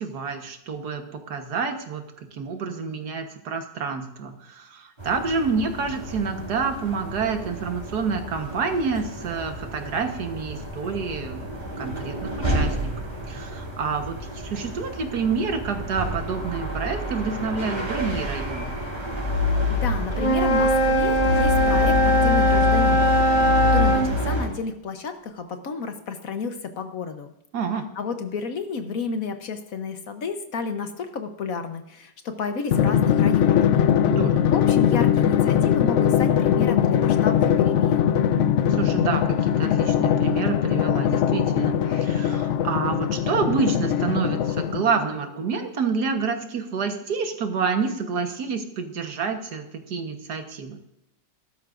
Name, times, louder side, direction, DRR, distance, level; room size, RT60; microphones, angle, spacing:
voice 1, 0.0-2.0 2.3-11.4 11.8-12.9 13.3-18.8 27.5-27.9 34.1-34.5 38.7-50.8, right 5 dB, 70° right, 6 dB, 1.7 m, -28 dB
sound 1, 5.0-24.5, left 3 dB, 25° right, 3.9 m, -28 dB
voice 2, 19.7-27.3 27.9-33.7 34.5-38.1, left 5 dB, 60° left, 7 dB, 1.3 m, -31 dB
Wind instrument woodwind instrument, 20.1-24.1, right 1 dB, 25° left, 0.8 m, -20 dB
Drum, 32.7-45.1, left 9 dB, 85° left, 0.6 m, -21 dB
15.5 x 12.5 x 2.5 m, 0.83 s
omnidirectional pair, 1.8 m